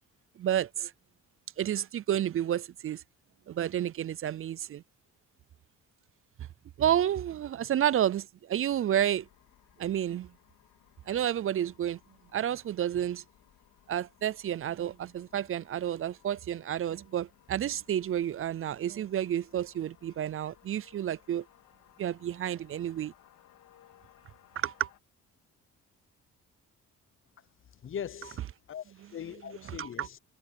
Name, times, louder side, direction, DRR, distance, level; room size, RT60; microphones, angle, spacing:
voice 1, 0.4-0.9 1.6-3.0 3.5-4.8 6.8-9.3 9.8-10.3 11.1-12.0 12.3-13.2 13.9-21.4 22.0-23.1 24.6-24.9 29.8-30.1, right 10 dB, 45° right, 0.5 m, -30 dB
sound 1, 9.1-25.0, left 12 dB, 85° left, 3.4 m, -62 dB
voice 2, 27.8-30.2, left 8 dB, 45° left, 0.8 m, -41 dB
cardioid pair, 90°, 30 cm